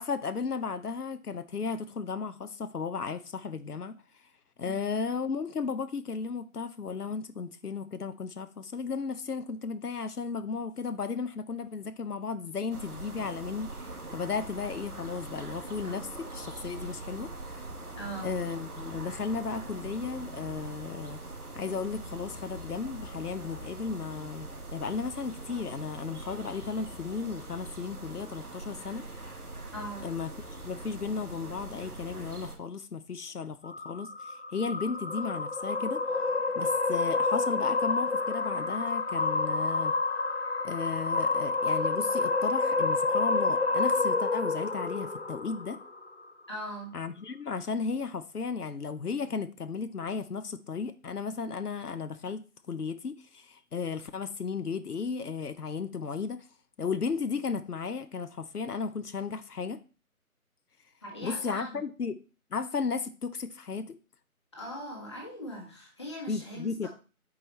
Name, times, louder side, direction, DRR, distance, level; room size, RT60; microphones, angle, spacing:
voice 1, 0.0-4.0 4.6-17.6 18.2-21.2 21.5-29.0 30.0-36.0 36.5-39.9 40.6-45.8 46.9-56.5 56.8-59.8 61.2-62.2 62.5-64.0 66.3-66.9, left 5 dB, 90° left, 0.7 m, -35 dB
sound 1, 12.7-32.6, right 2 dB, 80° right, 1.5 m, -42 dB
voice 2, 18.0-18.3 29.7-30.1 46.5-47.0 61.0-61.8 64.5-66.9, equal, 20° left, 1.3 m, -40 dB
sound 2, 33.6-46.1, left 3 dB, 50° left, 0.5 m, -29 dB
8.3 x 4.9 x 3.1 m
figure-of-eight pair, 160°, 45 cm